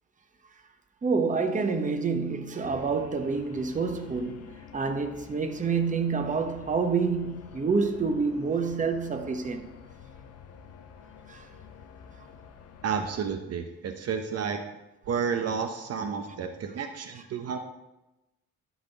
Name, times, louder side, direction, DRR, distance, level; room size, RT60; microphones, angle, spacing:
voice 1, 1.0-4.5 4.7-9.7 11.3-11.5, right 4 dB, 25° right, 0.9 m, -28 dB
sound 1, 2.6-13.3, left 7 dB, 55° left, 0.7 m, -49 dB
voice 2, 12.8-14.6 15.1-17.6, right 6 dB, 55° right, 0.7 m, -31 dB
11.0 x 4.1 x 3.9 m
cardioid pair, 90°, 30 cm